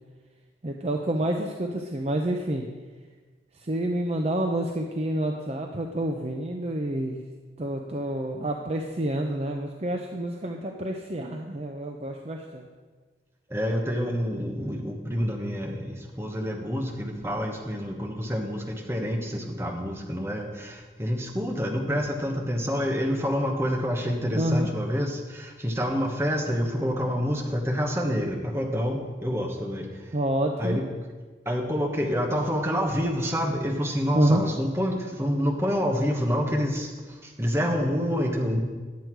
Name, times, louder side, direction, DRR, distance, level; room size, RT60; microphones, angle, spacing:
voice 1, 0.6-2.7 3.5-7.2 7.6-12.7 24.3-24.7 30.1-30.8 34.1-34.4, right 1 dB, 35° right, 2 dB, 0.6 m, -28 dB
voice 2, 13.5-30.1 30.6-30.8 31.4-38.6, equal, 15° right, 1 dB, 1.2 m, -27 dB
10.5 x 7.9 x 4.6 m, 1.4 s
head